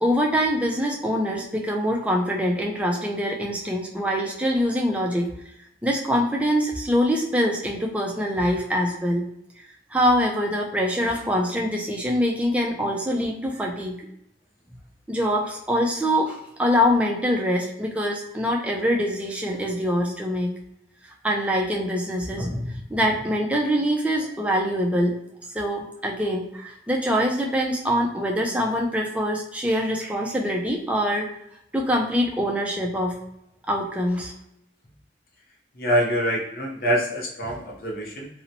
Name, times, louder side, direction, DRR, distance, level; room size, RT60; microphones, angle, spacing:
voice 1, 0.0-5.3 5.8-9.2 9.9-14.1 15.1-20.5 21.2-25.2 25.5-31.3 31.7-33.2 33.7-34.3, equal, 5° right, -1 dB, 0.3 m, -24 dB
voice 2, 35.7-38.3, equal, 50° left, -1 dB, 0.6 m, -25 dB
2.9 x 2.0 x 2.6 m, 0.79 s
head